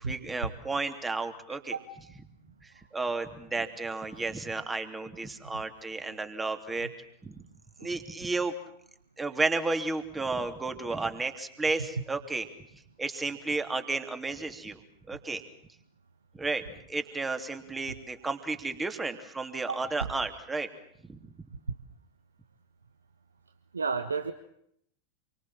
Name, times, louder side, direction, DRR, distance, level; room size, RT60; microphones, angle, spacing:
voice 1, 0.0-1.8 2.9-6.9 7.2-7.4 7.8-8.5 9.2-12.5 13.0-14.8 15.1-15.4 16.4-20.7 21.1-21.2, right 3 dB, 10° right, 7 dB, 3.2 m, -32 dB
voice 2, 23.7-24.3, right 5 dB, 75° right, 8 dB, 1.5 m, -32 dB
28.5 x 24.0 x 7.6 m, 0.71 s
figure-of-eight pair, 90°, 0 cm